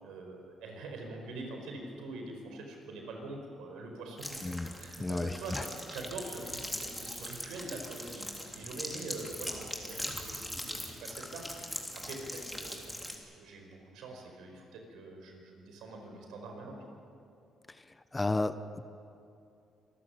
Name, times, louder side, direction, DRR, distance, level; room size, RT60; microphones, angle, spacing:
voice 1, 0.0-11.5 11.9-13.0 13.3-17.0, right 2 dB, 90° right, 2 dB, 4.8 m, -44 dB
sound 1, 4.2-13.2, equal, ahead, 3.4 m, -41 dB
voice 2, 4.4-4.7 5.0-5.6 17.7-17.8 18.1-18.9, left 2 dB, 20° left, 12 dB, 0.9 m, -33 dB
26.5 x 14.0 x 8.6 m, 2.6 s
cardioid pair, 90°, 0 cm